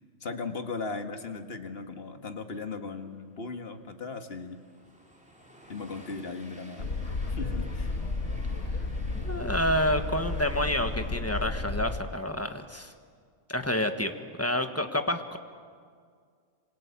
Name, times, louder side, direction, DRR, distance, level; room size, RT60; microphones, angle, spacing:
voice 1, 0.2-4.6 5.7-6.9 7.3-7.9, left 4 dB, 60° left, 7 dB, 1.8 m, -37 dB
Train, 3.2-12.6, equal, 5° right, 4.2 m, -54 dB
Boat Water vehicle, 6.8-12.0, left 3 dB, 90° left, 2.1 m, -32 dB
voice 2, 9.1-12.9 13.5-15.4, left 1 dB, 15° left, 7 dB, 1.5 m, -29 dB
27.0 x 26.0 x 8.5 m, 2.1 s
omnidirectional pair, 1.2 m